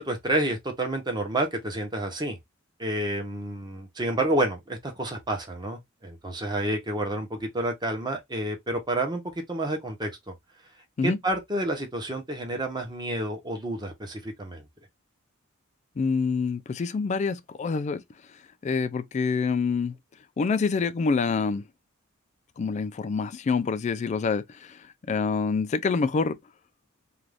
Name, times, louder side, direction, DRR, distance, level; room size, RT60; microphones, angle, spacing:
voice 1, 0.0-2.4 2.8-9.2 9.5-10.3 11.0-14.6, right 1 dB, 20° right, 0.8 m, -29 dB
voice 2, 16.0-18.0 18.6-20.0 20.4-21.6 22.6-24.8 25.1-26.4, left 4 dB, 35° left, 0.3 m, -26 dB
2.5 x 2.3 x 3.3 m
head